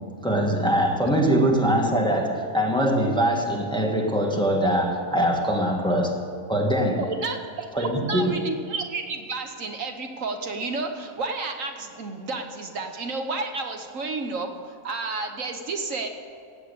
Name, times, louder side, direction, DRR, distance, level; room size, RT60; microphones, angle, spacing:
voice 1, 0.2-7.1 7.7-8.4, equal, 5° left, 1 dB, 1.5 m, -23 dB
voice 2, 7.0-16.1, right 3 dB, 65° right, 5 dB, 1.4 m, -31 dB
16.0 x 9.2 x 6.8 m, 2.5 s
omnidirectional pair, 1.5 m